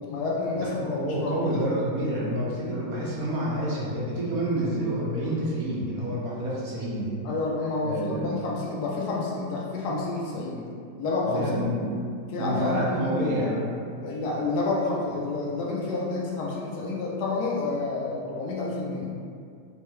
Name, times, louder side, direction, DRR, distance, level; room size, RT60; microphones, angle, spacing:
voice 1, 0.0-1.6 7.2-10.6 11.0-11.6 12.3-13.4 14.0-19.1, left 3 dB, 70° left, -3 dB, 1.1 m, -29 dB
voice 2, 0.6-7.2 7.8-8.3 11.2-13.7 14.3-14.4, right 1 dB, 65° right, -6 dB, 1.1 m, -28 dB
3.6 x 3.2 x 3.1 m, 2.3 s
omnidirectional pair, 1.8 m